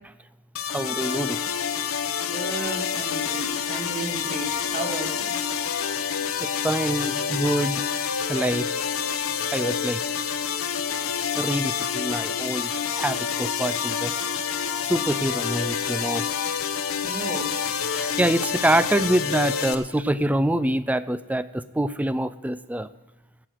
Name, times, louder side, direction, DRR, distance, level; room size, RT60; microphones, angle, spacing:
sound 1, 0.6-19.8, left 7 dB, 70° left, 0.9 m, -28 dB
voice 1, 0.7-1.4 6.4-7.8 8.3-8.6 9.5-10.0 11.4-12.7 12.9-14.1 14.9-16.2 17.9-22.9, right 1 dB, 5° right, 14 dB, 0.4 m, -25 dB
voice 2, 2.3-5.3 17.0-17.5, right 2 dB, 35° right, 1 dB, 2.3 m, -33 dB
16.5 x 6.4 x 7.6 m, 1.0 s
head